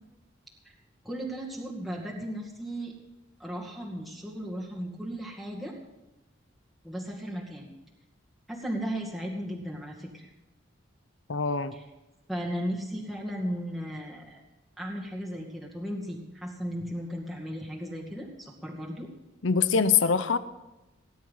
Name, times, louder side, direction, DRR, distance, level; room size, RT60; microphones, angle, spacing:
voice 1, 1.0-2.9 3.4-5.7 6.8-7.7 8.5-10.3 11.7-11.8 12.3-14.4 14.8-19.1, equal, ahead, -3 dB, 2.2 m, -36 dB
voice 2, 11.3-11.8 19.4-20.4, left 5 dB, 80° left, 13 dB, 0.8 m, -24 dB
18.0 x 10.5 x 5.6 m, 0.99 s
head